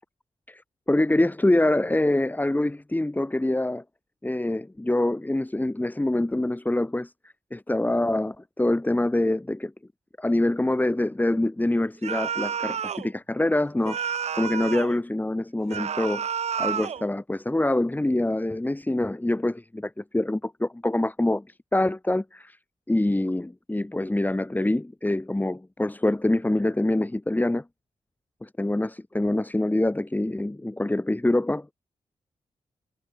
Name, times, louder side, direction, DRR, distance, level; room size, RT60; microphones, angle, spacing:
voice 1, 0.9-3.8 4.2-7.1 7.5-9.7 10.2-16.3 16.6-22.6 22.9-27.6 28.6-31.7, left 1 dB, 15° left, 1.9 m, -25 dB
sound 1, 12.0-13.1 13.9-15.0 15.7-17.1, right 7 dB, 60° right, 0.7 m, -30 dB
cardioid pair, 65°, 12 cm